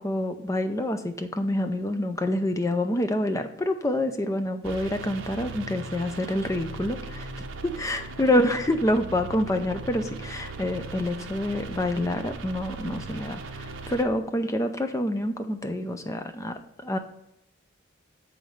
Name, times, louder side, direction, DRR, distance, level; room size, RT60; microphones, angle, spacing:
voice 1, 0.0-7.5 7.8-17.0, left 1 dB, 15° left, 7 dB, 0.5 m, -27 dB
sound 1, 4.6-14.0, right 3 dB, 80° right, 0.7 m, -39 dB
7.0 x 5.5 x 3.2 m, 0.86 s
head